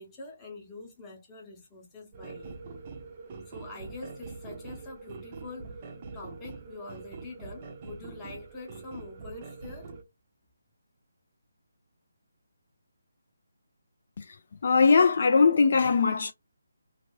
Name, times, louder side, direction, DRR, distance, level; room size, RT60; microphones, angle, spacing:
voice 1, 0.0-2.6 3.5-5.9 6.1-9.9, left 3 dB, 10° left, 0.8 m, -45 dB
sound 1, 2.1-10.0, right 4 dB, 25° right, 0.6 m, -44 dB
voice 2, 14.6-16.3, left 5 dB, 45° left, 0.3 m, -21 dB
2.5 x 2.5 x 3.0 m
hypercardioid pair, 170°, 0 cm